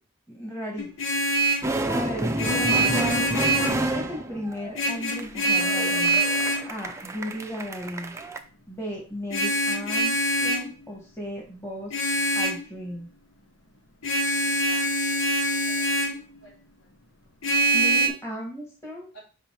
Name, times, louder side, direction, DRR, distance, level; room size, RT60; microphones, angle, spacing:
voice 1, 0.3-0.9 1.6-3.3 3.8-6.2 6.6-8.1 8.7-12.0 12.3-13.1 17.7-19.1, equal, 15° left, -2 dB, 1.5 m, -36 dB
Vehicle horn car horn honking, 0.8-1.7 2.4-3.9 4.7-6.7 9.3-10.7 11.9-12.6 14.0-16.2 17.4-18.1, right 1 dB, 85° left, 1.2 m, -24 dB
sound 1, 1.6-8.4, right 1 dB, 15° right, 0.5 m, -30 dB
voice 2, 14.1-16.6 19.1-19.2, equal, 60° left, -3 dB, 3.0 m, -53 dB
5.4 x 5.3 x 4.4 m, 0.37 s
head